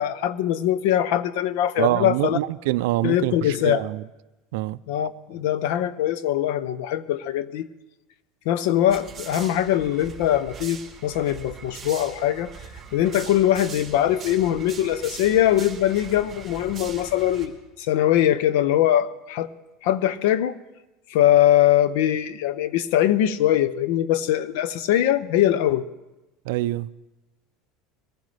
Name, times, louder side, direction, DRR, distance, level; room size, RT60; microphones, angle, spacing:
voice 1, 0.0-2.4 3.0-3.9 4.9-7.7 8.5-12.5 12.9-17.5 17.8-19.5 19.8-20.6 21.1-25.9, left 11 dB, 75° left, 0.7 m, -22 dB
voice 2, 1.8-4.0 4.5-4.8 26.5-26.9, right 17 dB, 80° right, 0.4 m, -25 dB
sound 1, 8.9-17.5, right 6 dB, 15° right, 3.0 m, -41 dB
23.0 x 15.0 x 3.3 m
cardioid pair, 150°, 0 cm